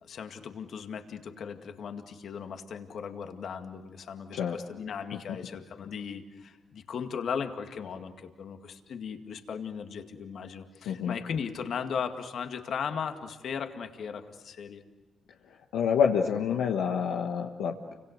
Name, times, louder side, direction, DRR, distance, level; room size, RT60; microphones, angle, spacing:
voice 1, 0.0-14.8, left 6 dB, 65° left, 6 dB, 2.1 m, -37 dB
voice 2, 15.7-17.9, left 7 dB, 80° left, 1 dB, 1.4 m, -27 dB
29.5 x 25.5 x 6.6 m, 1.2 s
hypercardioid pair, 50°, 0 cm